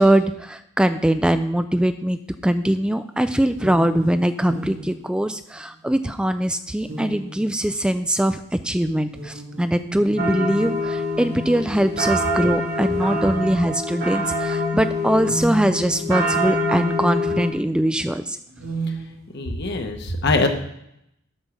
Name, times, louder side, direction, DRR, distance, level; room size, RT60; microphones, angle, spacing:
voice 1, 0.0-18.4, right 1 dB, 5° right, 10 dB, 0.3 m, -22 dB
sound 1, 3.5-5.9 6.8-8.1 9.0-10.9 11.7-11.8 12.8-13.8 15.1-16.9 18.5-19.7, right 3 dB, 85° right, 2.4 m, -36 dB
sound 2, 10.2-17.5, left 1 dB, 50° right, 1.7 m, -25 dB
voice 2, 19.3-20.5, left 3 dB, 55° left, 4 dB, 1.2 m, -22 dB
8.1 x 6.3 x 6.5 m, 0.78 s
head